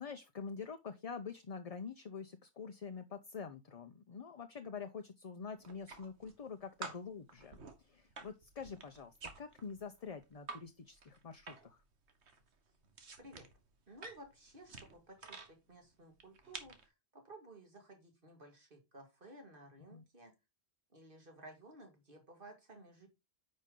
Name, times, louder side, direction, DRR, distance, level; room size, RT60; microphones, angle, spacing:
voice 1, 0.0-11.8 19.9-20.0, left 5 dB, 40° left, 0.7 m, -46 dB
sound 1, 5.6-6.5 6.8-10.6 10.9-11.8 12.1-15.5 16.1-16.8, right 4 dB, 85° right, 1.7 m, -50 dB
voice 2, 13.2-13.5 13.9-20.4 20.9-23.1, right 1 dB, 55° right, 2.4 m, -56 dB
9.4 x 5.3 x 3.7 m
omnidirectional pair, 1.1 m